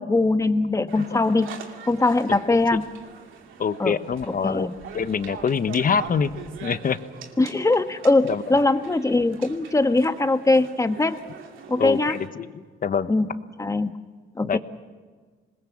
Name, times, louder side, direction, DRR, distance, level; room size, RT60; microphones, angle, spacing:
voice 1, 0.0-1.5 1.9-2.8 3.8-3.9 4.4-4.7 7.4-11.1 11.7-12.2 13.1-13.3 13.6-13.9 14.3-14.6, left 2 dB, 15° left, 9 dB, 1.3 m, -21 dB
sound 1, 0.9-12.3, right 7 dB, 80° right, 2.6 m, -42 dB
voice 2, 3.6-4.7 4.9-6.3 6.6-7.0 8.3-8.4 11.8-13.1 14.4-14.6, left 6 dB, 45° left, 12 dB, 1.2 m, -25 dB
26.5 x 20.5 x 7.3 m, 1.4 s
cardioid pair, 90°, 20 cm